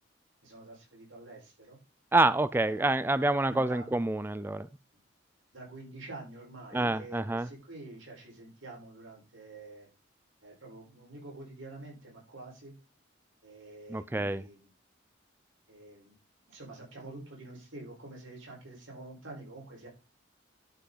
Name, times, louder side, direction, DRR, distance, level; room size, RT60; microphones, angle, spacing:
voice 1, 0.4-1.8 2.7-2.9 3.5-3.9 5.5-9.9 10.4-12.7 13.4-14.7 15.7-16.2 16.5-19.9, right 2 dB, 90° right, 4.7 m, -47 dB
voice 2, 2.1-4.7 6.7-7.5 13.9-14.4, right 2 dB, 10° right, 0.3 m, -27 dB
11.0 x 5.9 x 4.0 m
head